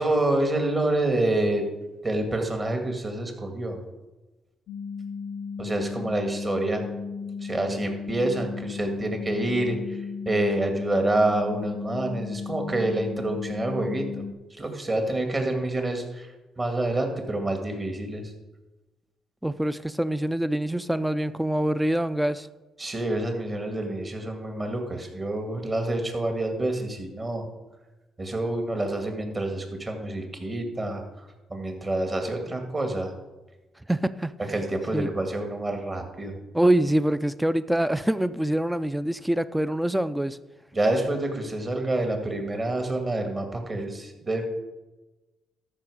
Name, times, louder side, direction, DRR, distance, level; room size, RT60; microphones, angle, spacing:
voice 1, 0.0-1.7 2.0-3.8 5.6-6.8 7.4-14.1 14.6-16.3 16.6-18.3 22.8-27.5 28.2-31.0 31.5-33.1 34.5-36.4 40.7-44.4, right 2 dB, 30° right, 4 dB, 2.0 m, -27 dB
sound 1, 4.7-14.3, left 5 dB, 75° left, 0.4 m, -35 dB
voice 2, 19.4-22.5 33.9-34.3 34.9-35.1 36.5-40.4, right 1 dB, 5° right, 14 dB, 0.4 m, -25 dB
13.0 x 5.7 x 4.9 m, 1.1 s
cardioid pair, 90°, 0 cm